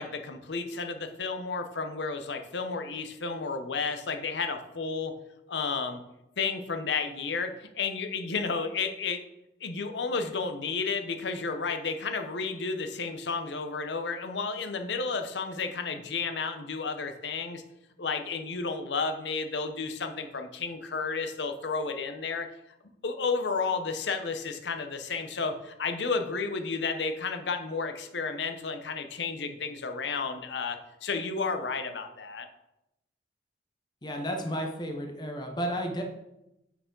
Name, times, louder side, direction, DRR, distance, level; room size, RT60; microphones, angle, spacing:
voice 1, 0.0-5.1 5.5-6.0 6.4-9.2 9.6-17.6 18.0-22.5 23.0-32.5, left 4 dB, 70° left, 7 dB, 0.7 m, -32 dB
voice 2, 34.0-36.0, equal, 25° left, 3 dB, 0.7 m, -32 dB
8.2 x 4.7 x 3.8 m, 0.88 s
head